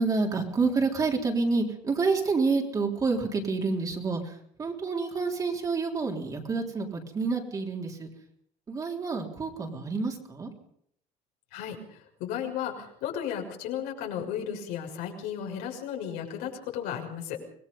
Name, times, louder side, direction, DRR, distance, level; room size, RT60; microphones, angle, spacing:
voice 1, 0.0-4.2 4.6-8.1 8.7-10.5, right 4 dB, 20° right, 1 dB, 3.6 m, -28 dB
voice 2, 11.5-17.4, left 9 dB, 75° left, 1 dB, 6.4 m, -34 dB
25.5 x 20.5 x 5.5 m, 0.68 s
cardioid pair, 150°, 16 cm